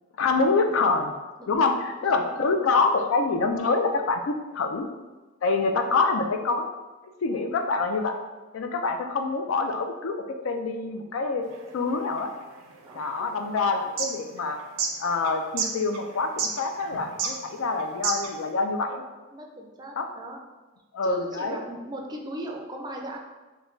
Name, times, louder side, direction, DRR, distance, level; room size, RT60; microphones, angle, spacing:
voice 1, 0.2-1.1 1.5-4.9 5.4-6.7 7.2-8.2 8.5-11.4 11.7-12.3 12.9-14.6 15.0-19.0 20.0-20.1 20.9-21.6, left 3 dB, 85° left, 5 dB, 0.4 m, -26 dB
voice 2, 1.4-2.8 7.3-7.5 12.8-13.3 19.3-20.4 21.0-23.2, right 1 dB, 20° right, 1 dB, 0.4 m, -39 dB
sound 1, 11.4-18.5, right 5 dB, 90° right, 0.4 m, -32 dB
3.1 x 2.2 x 3.7 m, 1.2 s
head